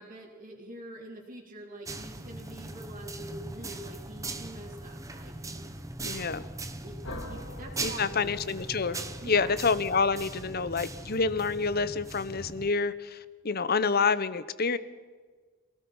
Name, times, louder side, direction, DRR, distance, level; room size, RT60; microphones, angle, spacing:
voice 1, 0.0-5.7 6.0-6.3 6.8-8.4 9.2-9.6, right 1 dB, 40° right, -6 dB, 3.5 m, -45 dB
sound 1, 1.8-12.7, right 2 dB, 15° right, 1.2 m, -40 dB
voice 2, 6.0-6.4 7.8-9.0 9.3-14.8, left 4 dB, 45° left, 15 dB, 0.9 m, -28 dB
sound 2, 7.0-11.7, left 1 dB, 80° left, 4.1 m, -46 dB
28.0 x 18.0 x 5.6 m, 1.4 s
head